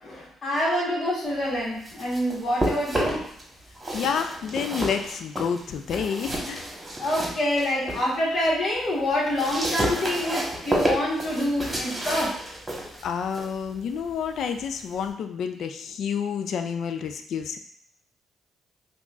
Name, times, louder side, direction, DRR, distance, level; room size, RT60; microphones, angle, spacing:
voice 1, 0.0-3.2 7.0-12.4, left 1 dB, 50° left, -5 dB, 1.3 m, -26 dB
sound 1, 1.6-3.4 3.7-8.1 8.5-15.1, right 1 dB, 20° right, 1.2 m, -31 dB
voice 2, 3.9-6.6 13.0-17.6, left 7 dB, 70° left, 7 dB, 0.3 m, -29 dB
5.3 x 2.3 x 2.4 m, 0.66 s
supercardioid pair, 60°, 0 cm